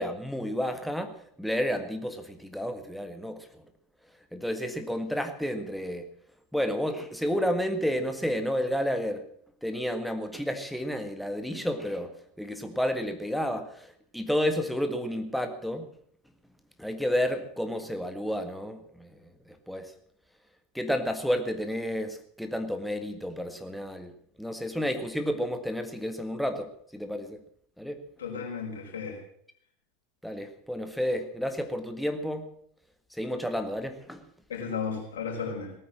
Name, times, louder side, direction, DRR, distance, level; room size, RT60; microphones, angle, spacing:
voice 1, 0.0-3.5 4.3-6.1 6.5-9.2 9.6-13.7 14.1-15.9 16.8-19.1 19.5-19.9 20.8-24.1 24.4-27.4 27.8-28.0 30.2-32.4 33.2-34.2, equal, ahead, 1.7 m, -31 dB
voice 2, 28.2-29.2 34.5-35.7, left 6 dB, 75° left, 5.0 m, -34 dB
18.0 x 9.4 x 7.5 m
figure-of-eight pair, 85°, 0 cm